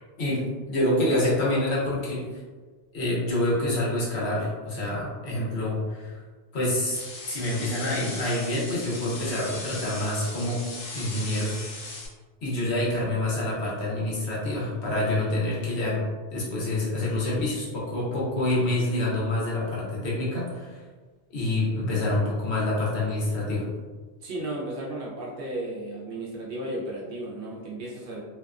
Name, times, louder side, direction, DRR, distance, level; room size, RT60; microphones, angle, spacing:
voice 1, 0.7-2.2 2.9-6.2 6.5-7.0 7.3-10.6 10.9-11.6 12.4-16.0 16.3-20.8 21.3-23.6, left 1 dB, 80° left, -6 dB, 1.1 m, -27 dB
sound 1, 6.9-12.1, left 2 dB, 45° left, 0.5 m, -38 dB
voice 2, 24.2-28.2, right 1 dB, 65° right, -4 dB, 0.8 m, -34 dB
2.7 x 2.2 x 2.3 m, 1.4 s
omnidirectional pair, 1.1 m